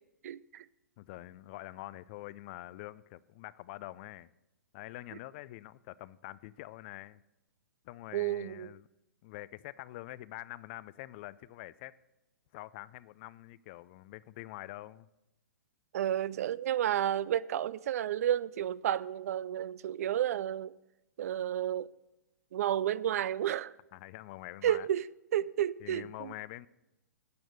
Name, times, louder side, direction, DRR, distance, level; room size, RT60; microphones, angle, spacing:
voice 1, 0.2-0.6 8.1-8.7 15.9-20.7 21.2-21.9 22.5-23.7 24.6-26.3, right 11 dB, 60° right, 0.4 m, -31 dB
voice 2, 1.0-4.3 4.7-7.2 7.8-8.9 9.2-12.0 12.5-15.1 23.9-24.9 25.8-26.7, left 17 dB, 40° left, 0.4 m, -46 dB
9.4 x 8.7 x 6.3 m
hypercardioid pair, 120°, 9 cm